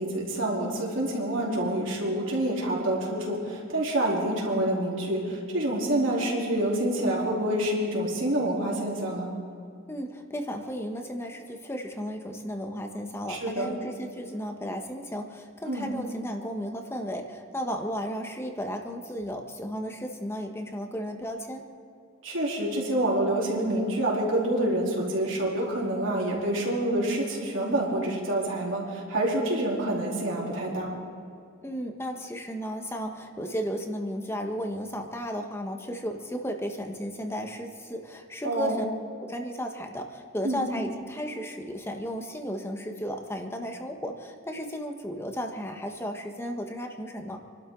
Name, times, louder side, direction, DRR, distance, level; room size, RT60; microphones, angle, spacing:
voice 1, 0.0-9.3 13.3-13.7 15.7-15.9 22.2-30.9 38.4-38.8 40.4-40.6, right 1 dB, 70° right, -4 dB, 3.8 m, -27 dB
voice 2, 9.9-21.6 31.6-38.9 39.2-47.4, equal, 15° left, 4 dB, 1.4 m, -34 dB
27.5 x 12.5 x 4.0 m, 2.4 s
head